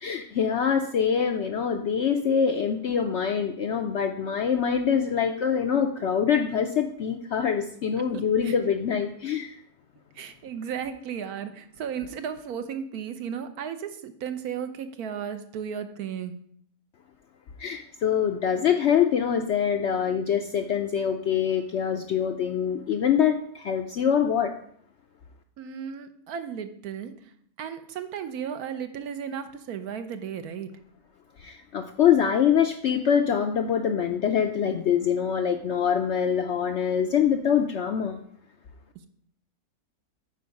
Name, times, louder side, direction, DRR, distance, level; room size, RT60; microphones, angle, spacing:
voice 1, 0.0-9.6 17.6-24.5 31.4-38.2, left 8 dB, 65° left, 6 dB, 0.7 m, -24 dB
voice 2, 8.0-8.5 10.1-16.4 25.6-27.1 27.6-30.7 38.9-39.1, right 8 dB, 75° right, 9 dB, 1.2 m, -35 dB
9.3 x 4.6 x 5.2 m, 0.64 s
omnidirectional pair, 1.6 m